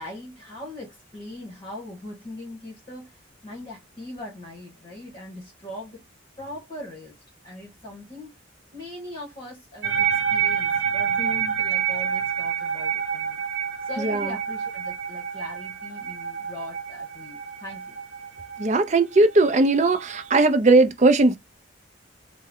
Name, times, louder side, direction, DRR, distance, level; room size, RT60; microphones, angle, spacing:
voice 1, 0.0-6.0 6.4-7.2 7.4-8.3 8.7-13.4 13.8-18.0, left 1 dB, 30° left, 1.4 m, -40 dB
sound 1, 9.8-20.4, right 8 dB, 70° right, 0.8 m, -28 dB
voice 2, 14.0-14.3 18.6-21.4, right 2 dB, 35° right, 0.5 m, -18 dB
3.4 x 2.2 x 3.6 m
head